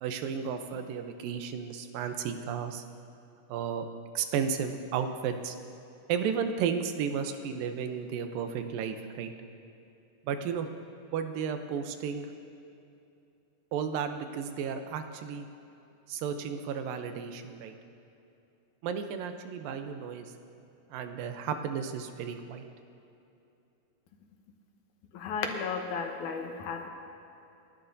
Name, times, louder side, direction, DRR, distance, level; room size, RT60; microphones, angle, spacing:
voice 1, 0.0-2.8 3.5-3.9 4.1-5.6 6.1-9.3 10.2-10.7 11.1-12.3 13.7-15.5 16.1-17.7 18.8-20.3 20.9-22.7, right 7 dB, 85° right, 7 dB, 2.5 m, -33 dB
voice 2, 25.1-26.9, left 5 dB, 70° left, 3 dB, 2.3 m, -34 dB
29.0 x 11.5 x 2.7 m, 2.8 s
omnidirectional pair, 3.9 m